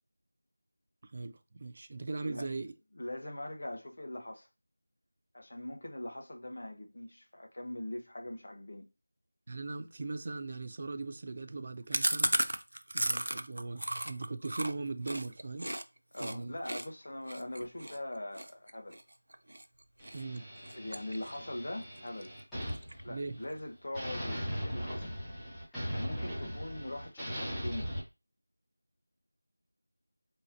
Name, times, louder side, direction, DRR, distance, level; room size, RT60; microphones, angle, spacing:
voice 1, 1.0-2.7 9.5-12.4 12.9-15.7 16.2-16.6 20.1-20.5 23.1-23.4, right 3 dB, 25° right, 0.3 m, -39 dB
voice 2, 2.9-4.5 5.3-8.9 16.1-19.0 20.7-22.3 23.0-25.1 25.7-27.9, left 1 dB, 45° left, 0.8 m, -42 dB
Chewing mastication, 11.9-15.8 16.1-16.3 16.6-19.6 20.0-20.4 20.6-21.5 21.8-21.9 22.2-22.3 22.6-23.2, right 1 dB, 85° right, 0.5 m, -34 dB
sound 1, 20.0-23.6 23.9-28.0, equal, 5° left, 0.9 m, -39 dB
3.7 x 2.5 x 2.8 m
figure-of-eight pair, 180°, 0 cm